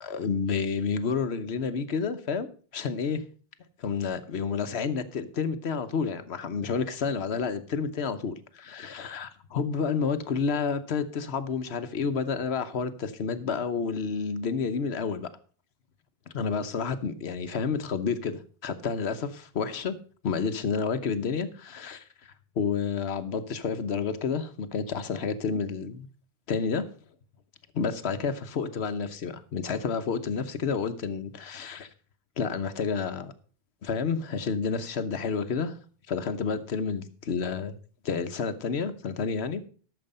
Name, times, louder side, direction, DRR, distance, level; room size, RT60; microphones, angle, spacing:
voice 1, 0.0-3.2 3.8-15.3 16.3-20.0 20.2-22.0 22.6-26.1 26.5-26.9 27.7-31.9 32.4-33.3 33.8-35.8 36.1-37.8 38.0-39.6, left 5 dB, 75° left, 11 dB, 1.2 m, -30 dB
12.5 x 6.9 x 5.4 m, 0.41 s
omnidirectional pair, 1.1 m